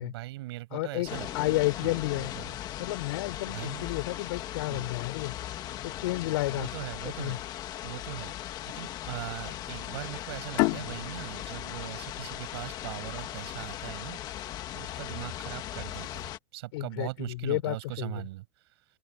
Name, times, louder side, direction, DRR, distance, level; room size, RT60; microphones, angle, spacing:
voice 1, 0.0-2.6 3.5-3.9 4.7-4.9 6.5-18.5, right 18 dB, 70° right, 7.2 m, -40 dB
voice 2, 0.7-1.1 1.3-2.3 2.8-5.3 5.8-6.7 7.2-7.4 16.7-18.2, left 19 dB, 65° left, 6.2 m, -31 dB
sound 1, 1.1-16.4, left 12 dB, 30° left, 1.7 m, -38 dB
sound 2, 10.6-13.8, left 23 dB, 45° left, 3.6 m, -32 dB
open air
supercardioid pair, 170°, 14 cm